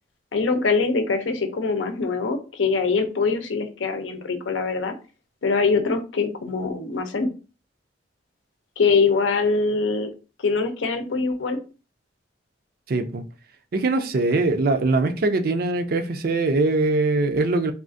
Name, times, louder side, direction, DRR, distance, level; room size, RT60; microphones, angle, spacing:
voice 1, 0.3-4.9 5.4-7.3 8.8-10.1 10.4-11.6, left 4 dB, 90° left, 0.6 m, -23 dB
voice 2, 12.9-13.2 13.7-17.7, right 2 dB, 50° right, 0.4 m, -22 dB
3.5 x 2.4 x 2.6 m
head